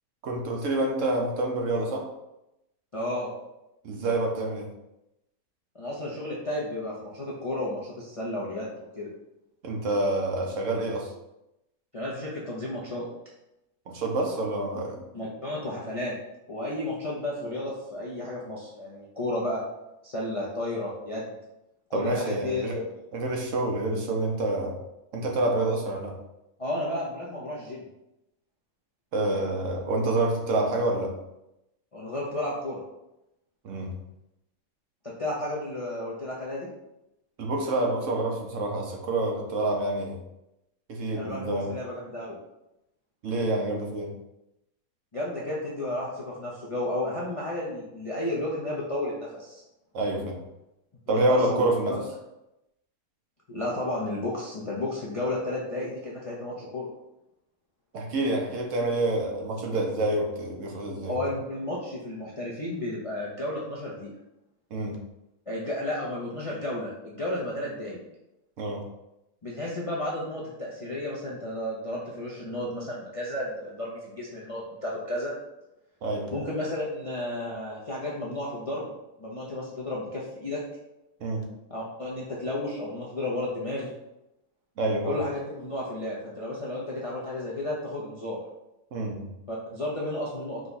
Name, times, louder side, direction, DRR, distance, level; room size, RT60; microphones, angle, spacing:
voice 1, 0.2-2.1 3.8-4.7 9.6-11.1 13.9-15.0 21.9-22.8 23.1-24.8 25.1-26.1 29.1-31.1 33.6-34.0 37.4-40.2 40.9-41.7 43.2-44.1 49.9-50.4 51.1-52.0 57.9-61.2 64.7-65.0 68.6-68.8 76.0-76.4 81.2-81.5 84.8-85.2 88.9-89.3, right 2 dB, 65° right, 1 dB, 1.0 m, -27 dB
voice 2, 2.9-3.3 5.7-9.1 11.9-13.0 15.1-16.1 16.5-19.6 20.0-21.3 21.9-22.9 26.6-27.8 31.9-32.8 35.0-36.7 41.2-42.3 45.1-49.6 51.1-52.0 53.5-56.9 61.1-64.1 65.5-68.0 69.4-75.3 76.3-78.9 79.2-80.6 81.7-83.9 85.0-88.4 89.5-90.6, left 1 dB, 40° left, -5 dB, 0.5 m, -32 dB
4.9 x 2.3 x 4.0 m, 0.89 s
omnidirectional pair, 1.5 m